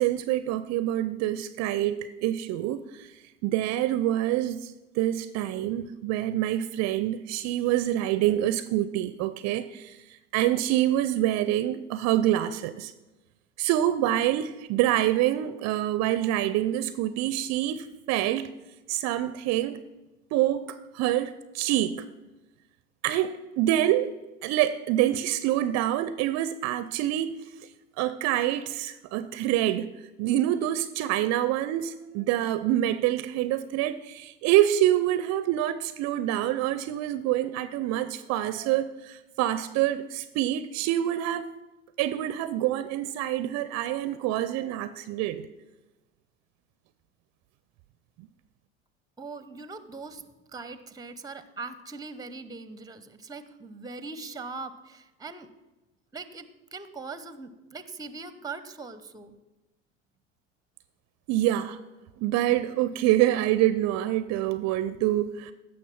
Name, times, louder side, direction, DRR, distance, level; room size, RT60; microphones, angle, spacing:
voice 1, 0.0-12.9 13.6-18.5 18.9-19.8 20.3-22.0 23.0-24.1 24.4-27.3 28.0-29.9 30.2-41.5 42.0-45.4 61.3-61.8 62.2-65.5, right 13 dB, 45° right, 0.6 m, -26 dB
voice 2, 49.2-50.2 50.5-55.5 56.1-59.4, right 4 dB, 10° right, 0.8 m, -41 dB
16.0 x 6.3 x 5.9 m
figure-of-eight pair, 75°, 38 cm